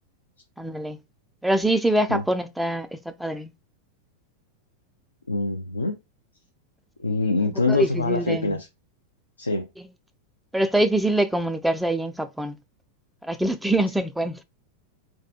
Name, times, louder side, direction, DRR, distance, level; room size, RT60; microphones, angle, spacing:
voice 1, 0.6-1.0 1.4-3.5 7.7-8.6 9.8-9.9 10.5-12.6 13.2-14.4, right 1 dB, 5° right, 0.3 m, -24 dB
voice 2, 5.3-6.0 7.0-8.7 9.4-9.7, left 3 dB, 80° left, 0.4 m, -24 dB
2.3 x 2.2 x 2.6 m
figure-of-eight pair, 90°, 0 cm